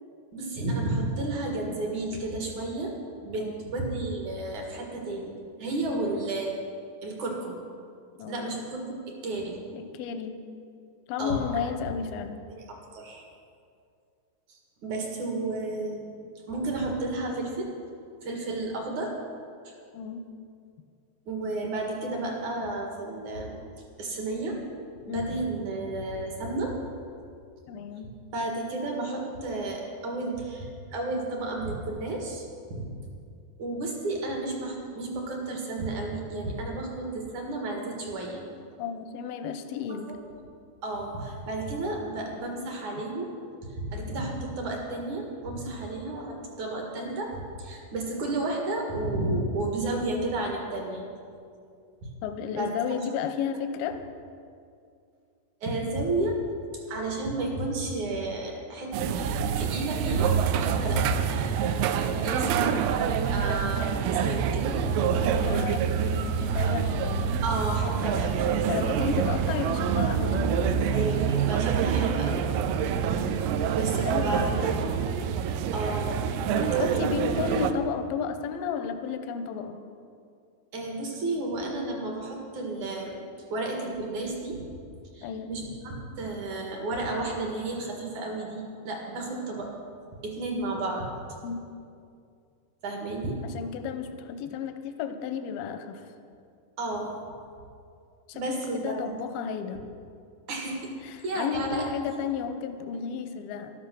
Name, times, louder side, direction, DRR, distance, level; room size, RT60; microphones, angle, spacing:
voice 1, 0.3-2.9 3.2-5.3 5.6-6.5 7.0-7.6 8.3-9.6 11.2-11.7 12.5-13.3 14.5-17.7 18.2-19.1 19.6-19.8 21.3-23.6 24.0-24.6 25.1-26.8 28.3-32.9 33.6-38.5 40.1-40.2 40.8-43.3 43.6-51.1 52.6-52.7 55.6-56.4 56.7-59.1 59.6-61.4 62.2-62.7 63.1-64.7 67.4-68.5 70.9-72.5 73.7-74.5 74.8-75.2 75.7-76.2 76.5-77.3 80.7-83.2 83.5-84.7 85.1-89.7 90.2-91.1 92.8-93.4 96.8-97.1 98.3-99.0 99.3-99.5 100.5-100.9 101.2-102.2, right 2 dB, 55° right, 0 dB, 2.6 m, -32 dB
voice 2, 3.4-3.7 8.2-8.5 9.7-10.4 11.1-12.4 19.9-20.3 25.0-25.3 27.7-28.1 38.8-40.1 52.2-54.0 61.8-62.7 65.0-67.4 68.7-70.5 73.9-75.0 76.6-79.8 85.2-85.5 91.4-91.6 93.4-96.1 98.3-99.9 101.0-103.7, left 7 dB, 80° left, 8 dB, 2.2 m, -33 dB
sound 1, 58.9-77.7, right 7 dB, 85° right, 2.3 m, -26 dB
14.0 x 12.0 x 6.2 m, 2.4 s
omnidirectional pair, 5.1 m